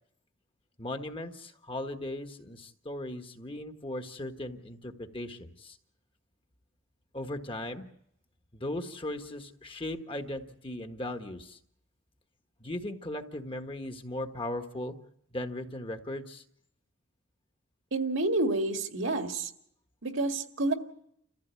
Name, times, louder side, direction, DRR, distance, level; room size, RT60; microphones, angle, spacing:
voice 1, 0.8-5.8 7.1-7.9 8.5-11.6 12.6-15.0 15.3-16.4, left 1 dB, 25° left, 6 dB, 1.4 m, -38 dB
voice 2, 17.9-19.5 20.0-20.7, right 2 dB, 70° right, 5 dB, 2.1 m, -29 dB
30.0 x 15.0 x 8.3 m, 0.74 s
head